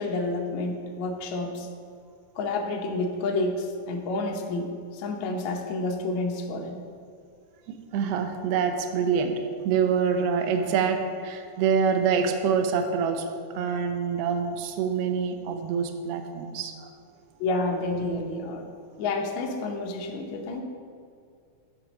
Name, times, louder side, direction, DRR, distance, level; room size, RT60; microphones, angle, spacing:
voice 1, 0.0-1.7 2.4-6.8 17.4-18.6 19.0-20.6, left 2 dB, 70° left, 1 dB, 2.1 m, -29 dB
voice 2, 7.9-13.3 13.5-16.9, right 6 dB, 80° right, 5 dB, 1.4 m, -26 dB
11.0 x 3.8 x 6.0 m, 2.3 s
omnidirectional pair, 3.5 m